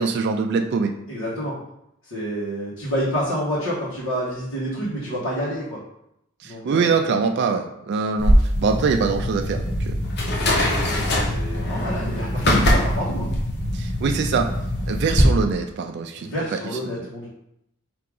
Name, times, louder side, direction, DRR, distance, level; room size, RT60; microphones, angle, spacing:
voice 1, 0.0-1.0 6.4-10.0 13.7-14.5 14.9-16.6, right 5 dB, 55° right, 5 dB, 0.3 m, -23 dB
voice 2, 1.1-1.6 2.0-5.8 6.4-6.9 10.4-13.3 16.2-17.3, equal, 70° left, -10 dB, 1.4 m, -29 dB
sound 1, 8.2-15.2, equal, 55° left, 0.9 m, -23 dB
sound 2, 8.5-15.3, left 1 dB, 20° left, 0.6 m, -28 dB
4.7 x 2.8 x 3.8 m, 0.80 s
head